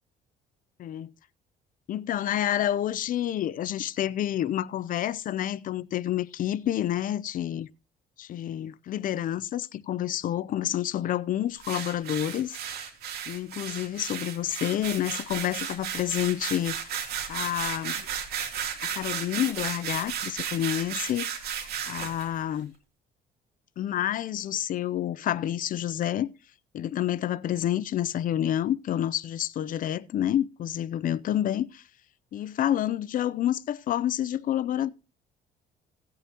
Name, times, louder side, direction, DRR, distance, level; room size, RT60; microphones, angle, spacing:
voice 1, 0.8-1.1 1.9-7.7 8.2-12.6 13.3-16.9 17.3-18.1 18.8-22.7 23.8-26.3 26.7-31.8 32.3-34.9, left 11 dB, 55° left, 0.6 m, -29 dB
sound 1, 11.6-22.3, right 8 dB, 70° right, 3.0 m, -34 dB
17.0 x 8.6 x 2.9 m
cardioid pair, 110°, 17 cm